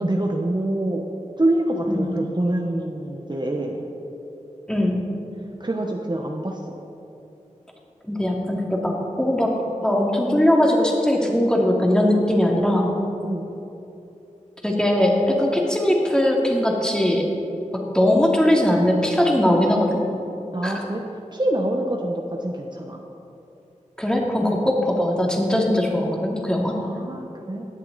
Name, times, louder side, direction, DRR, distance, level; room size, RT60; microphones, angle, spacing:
voice 1, 0.0-1.0 1.4-3.8 5.6-6.6 13.2-13.5 20.5-21.0 21.3-23.0 26.8-27.7, right 1 dB, 35° right, 1 dB, 1.1 m, -25 dB
voice 2, 4.7-5.0 8.1-9.5 9.8-12.9 14.6-17.2 17.7-20.0 20.6-20.7 24.0-26.8, left 1 dB, 5° left, -2 dB, 2.5 m, -20 dB
17.0 x 10.5 x 4.1 m, 2.9 s
wide cardioid pair, 50°, 13 cm